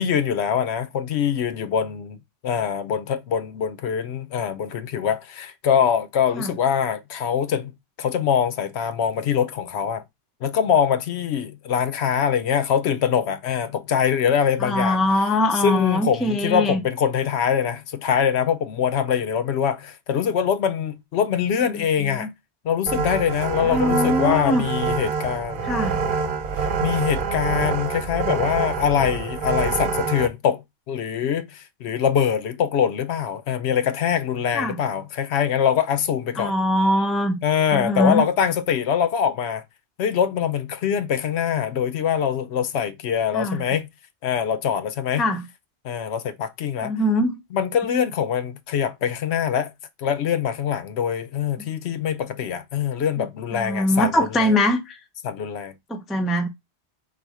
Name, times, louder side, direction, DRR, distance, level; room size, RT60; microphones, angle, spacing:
voice 1, 0.0-2.2 2.4-7.7 8.0-10.0 10.4-15.0 15.6-22.3 22.6-25.7 26.8-36.6 37.4-39.6 40.0-43.9 44.2-45.3 45.8-46.9 47.5-49.7 50.0-54.5 55.2-55.7, left 8 dB, 75° left, 0.9 m, -23 dB
voice 2, 14.6-16.8 21.7-21.8 22.1-22.3 23.6-24.6 25.6-26.0 34.5-34.8 36.4-37.4 37.7-38.2 43.3-43.6 45.2-45.4 46.8-47.4 51.6-51.7 53.5-55.0 55.9-56.5, left 1 dB, ahead, 0.3 m, -22 dB
sound 1, 22.9-30.3, right 5 dB, 55° right, 0.6 m, -26 dB
4.1 x 2.5 x 4.7 m
omnidirectional pair, 1.2 m